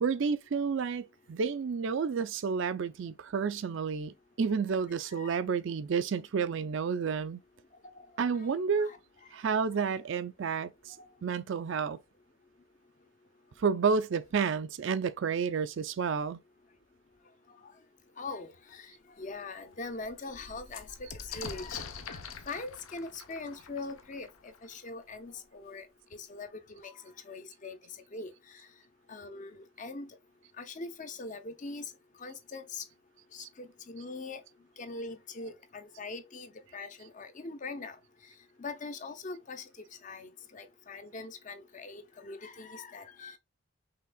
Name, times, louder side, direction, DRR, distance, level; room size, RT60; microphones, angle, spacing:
voice 1, 0.0-7.4 8.2-8.9 9.3-11.0 11.2-12.0 13.6-16.4, right 5 dB, 60° right, 0.4 m, -30 dB
voice 2, 5.1-5.4 8.0-8.1 8.3-8.5 8.8-9.0 18.2-22.2 22.5-25.9 26.1-26.9 27.2-27.8 28.1-28.6 29.1-30.2 30.6-31.9 32.2-32.8 33.3-34.4 34.8-38.0 38.6-39.6 40.0-43.4, left 3 dB, 35° left, 0.6 m, -42 dB
sound 1, 18.7-18.8 19.2-19.3 19.6-25.2 26.1-26.2 26.5-27.1, left 6 dB, 75° left, 0.7 m, -45 dB
5.7 x 3.4 x 2.2 m
head